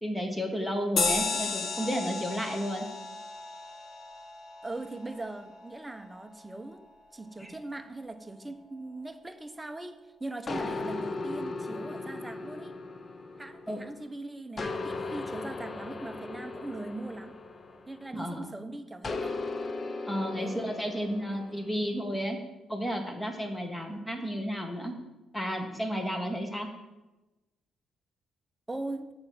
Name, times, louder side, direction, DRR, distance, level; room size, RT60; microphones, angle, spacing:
voice 1, 0.0-2.9 7.4-7.5 13.7-13.8 18.1-18.5 20.1-22.4 22.7-24.9 25.3-26.7, equal, 10° left, 4 dB, 1.3 m, -32 dB
sound 1, 1.0-5.9, left 4 dB, 60° left, 1.1 m, -34 dB
voice 2, 4.6-6.9 7.1-12.7 13.4-17.4 17.9-19.4 20.4-20.6 28.7-29.1, right 2 dB, 15° right, 7 dB, 0.7 m, -40 dB
sound 2, 10.5-14.0 14.6-18.3 19.0-21.7, left 3 dB, 35° left, 0.5 m, -37 dB
7.5 x 4.4 x 6.1 m, 1.1 s
cardioid pair, 90°, 0 cm